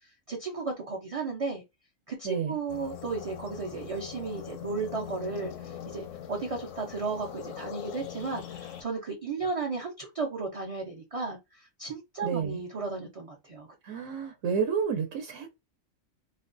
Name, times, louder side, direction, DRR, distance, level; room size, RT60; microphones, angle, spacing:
voice 1, 0.3-1.6 2.1-13.7, right 4 dB, 50° right, 0.4 m, -34 dB
voice 2, 2.2-2.6 12.2-12.6 13.8-15.5, right 6 dB, 75° right, 0.9 m, -30 dB
sound 1, 2.7-8.8, left 9 dB, 75° left, 0.9 m, -42 dB
2.4 x 2.2 x 2.4 m
omnidirectional pair, 1.3 m